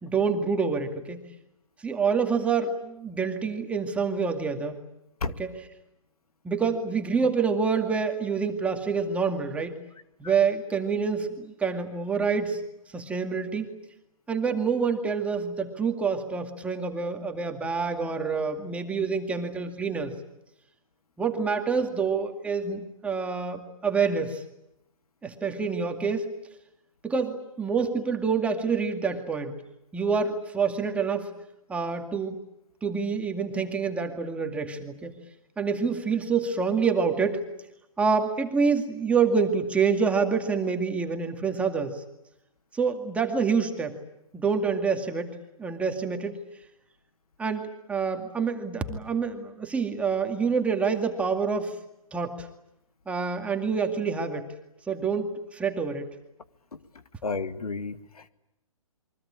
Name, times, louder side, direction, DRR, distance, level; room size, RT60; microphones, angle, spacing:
voice 1, 0.0-1.2 1.8-4.8 5.4-5.5 6.4-9.7 10.2-12.6 12.9-13.7 14.3-20.2 21.2-24.4 25.2-26.3 27.0-29.5 29.9-31.3 31.7-32.4 32.8-35.1 35.6-37.5 38.0-42.0 42.7-44.0 44.3-45.3 45.6-46.4 47.4-51.8 52.1-52.5 53.1-54.5 54.9-56.1, right 5 dB, 5° right, 4 dB, 2.2 m, -27 dB
voice 2, 56.7-58.3, left 4 dB, 85° left, 10 dB, 2.1 m, -33 dB
28.0 x 24.0 x 8.7 m, 0.86 s
hypercardioid pair, 150°, 19 cm